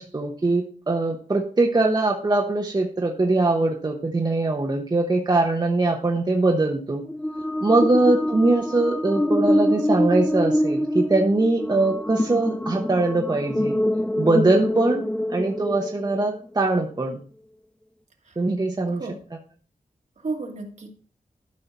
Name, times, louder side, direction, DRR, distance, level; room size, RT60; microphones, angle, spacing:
voice 1, 0.0-7.0 7.6-13.8 14.2-15.0 15.3-17.2 18.4-19.0, right 2 dB, 30° right, 1 dB, 1.0 m, -22 dB
sound 1, 7.1-16.5, equal, 5° left, 0.3 m, -25 dB
voice 2, 18.9-19.2 20.2-20.9, right 3 dB, 55° right, 3 dB, 1.8 m, -33 dB
12.5 x 5.5 x 4.2 m, 0.42 s
wide cardioid pair, 130°, 14 cm